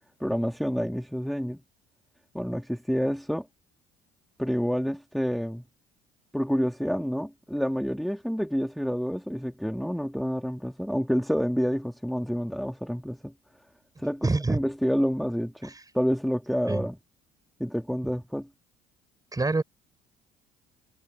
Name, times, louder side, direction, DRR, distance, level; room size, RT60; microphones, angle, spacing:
voice 1, 0.2-1.6 2.3-3.5 4.4-5.6 6.3-13.3 14.0-17.0 17.6-18.5, equal, ahead, 2.2 m, -28 dB
voice 2, 14.2-14.6 15.7-15.8 16.7-16.9 19.3-19.6, right 3 dB, 20° right, 4.4 m, -25 dB
hypercardioid pair, 65°, 20 cm